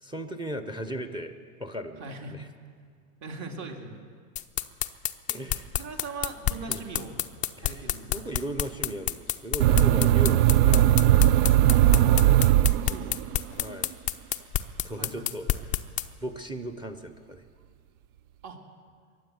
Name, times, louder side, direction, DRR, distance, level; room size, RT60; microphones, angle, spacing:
voice 1, 0.0-2.5 5.3-5.7 6.7-6.8 7.6-10.9 13.6-13.9 14.8-15.7 16.2-17.5, right 1 dB, 10° right, 9 dB, 0.8 m, -37 dB
voice 2, 2.0-2.3 3.2-4.0 5.3-5.4 5.7-7.1 7.6-8.1 10.8-10.9 11.7-13.3 15.0-15.3 18.4-18.6, right 3 dB, 40° right, 3 dB, 2.5 m, -40 dB
sound 1, 4.4-16.1, left 12 dB, 20° left, 0.4 m, -28 dB
sound 2, 9.6-13.3, right 13 dB, 75° right, 0.6 m, -19 dB
22.0 x 8.1 x 7.9 m, 2.2 s
supercardioid pair, 115°, 44 cm